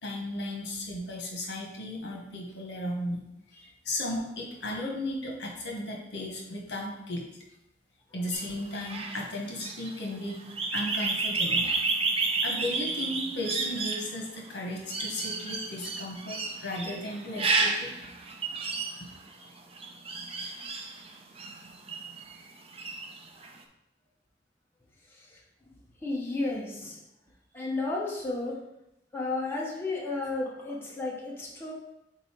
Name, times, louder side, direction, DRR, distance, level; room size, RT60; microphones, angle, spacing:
voice 1, 0.0-3.2 3.5-7.2 8.1-10.4 10.7-11.7 12.4-17.9, left 1 dB, 75° left, 0 dB, 1.3 m, -35 dB
sound 1, 8.3-22.4 22.7-23.5, right 3 dB, 35° right, 0.6 m, -32 dB
voice 2, 25.1-25.4 26.0-27.0 27.5-28.6 29.1-31.7, left 2 dB, 15° left, -4 dB, 1.0 m, -33 dB
5.4 x 4.0 x 4.5 m, 0.85 s
head